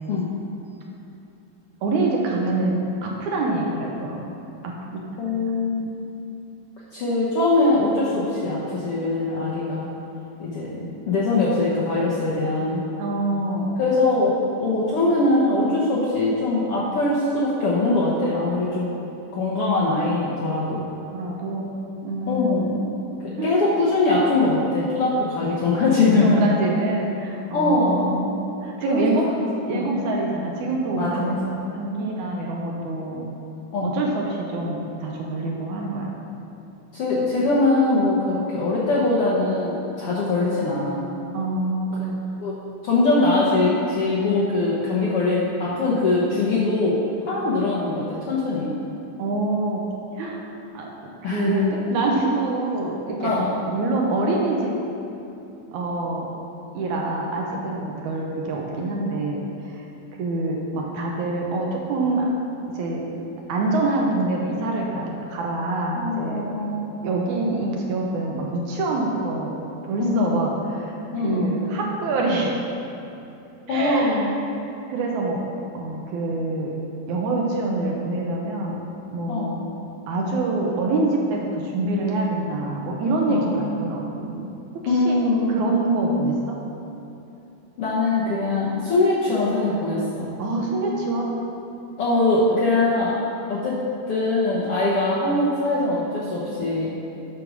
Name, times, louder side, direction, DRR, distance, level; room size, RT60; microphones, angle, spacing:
voice 1, 1.8-4.7 5.3-5.4 10.8-10.9 13.0-13.7 21.1-21.7 22.0-22.8 23.4-23.6 26.2-29.3 29.6-31.4 31.7-33.2 33.8-36.1 41.3-42.2 49.2-49.8 50.2-50.4 50.7-50.9 51.2-53.3 53.7-54.7 55.7-56.3 56.7-59.4 59.7-59.8 60.2-62.3 62.7-63.2 63.5-66.4 67.0-71.0 71.2-72.6 73.7-74.2 74.9-75.4 75.7-76.7 77.1-78.8 79.1-79.6 80.1-84.5 84.8-86.6 90.4-91.3, right 2 dB, 75° right, -1 dB, 2.1 m, -25 dB
voice 2, 5.2-5.9 6.9-9.9 10.4-12.8 13.8-14.3 14.6-18.9 19.3-20.8 22.3-22.9 23.4-26.5 27.5-28.1 28.9-29.4 29.7-29.8 30.9-31.5 33.7-33.9 36.9-41.0 42.4-42.6 42.8-47.0 47.3-48.7 51.2-51.6 53.2-53.5 65.9-66.8 70.0-70.5 71.1-71.6 73.7-74.3 79.3-79.5 83.3-83.7 84.9-85.5 87.8-90.3 92.0-93.2 93.5-93.8 94.1-96.9, left 2 dB, 65° left, -7 dB, 1.4 m, -22 dB
8.3 x 5.2 x 6.2 m, 2.9 s
omnidirectional pair, 3.8 m